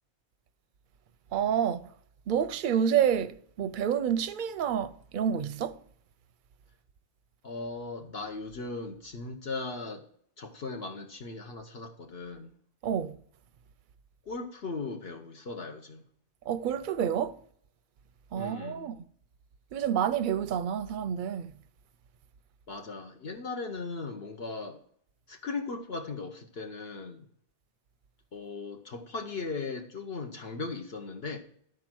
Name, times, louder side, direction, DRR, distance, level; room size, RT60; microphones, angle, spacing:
voice 1, 1.3-1.9 2.3-5.8 12.8-13.2 16.5-17.4 18.3-19.0 19.7-21.5, right 8 dB, 55° right, 0.6 m, -28 dB
voice 2, 7.4-10.1 10.4-12.5 14.3-16.0 18.4-18.9 22.7-24.8 25.3-27.2 28.3-31.4, left 3 dB, 60° left, 1.2 m, -38 dB
12.0 x 4.8 x 6.1 m
omnidirectional pair, 1.2 m